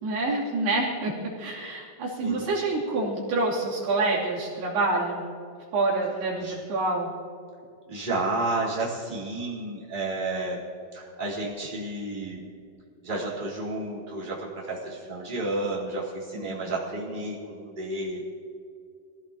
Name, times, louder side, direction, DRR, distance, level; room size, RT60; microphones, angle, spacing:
voice 1, 0.0-5.3 5.7-7.1 16.3-16.7, right 2 dB, 70° right, -6 dB, 4.8 m, -27 dB
voice 2, 7.9-10.7 10.9-12.5 13.0-18.2, right 2 dB, 10° right, -8 dB, 4.2 m, -31 dB
25.5 x 16.5 x 3.1 m, 2.4 s
omnidirectional pair, 4.7 m